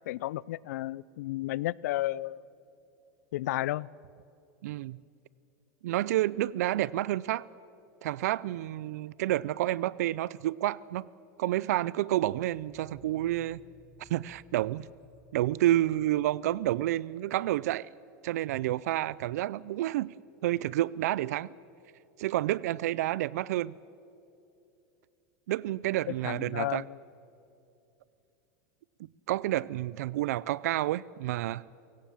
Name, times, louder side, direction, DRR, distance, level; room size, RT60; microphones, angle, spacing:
voice 1, 0.0-2.4 3.3-3.9 26.1-27.0, left 16 dB, 85° left, 23 dB, 0.4 m, -33 dB
voice 2, 4.6-5.0 5.8-7.4 8.0-11.0 11.4-13.6 14.0-14.9 15.3-17.9 18.2-20.1 20.4-21.5 22.2-23.7 25.5-26.8 29.3-31.6, right 14 dB, 85° right, 22 dB, 0.4 m, -29 dB
sound 1, 12.3-17.0, left 2 dB, 5° right, 6.8 m, -59 dB
29.0 x 17.5 x 7.2 m, 2.7 s
supercardioid pair, 140°, 8 cm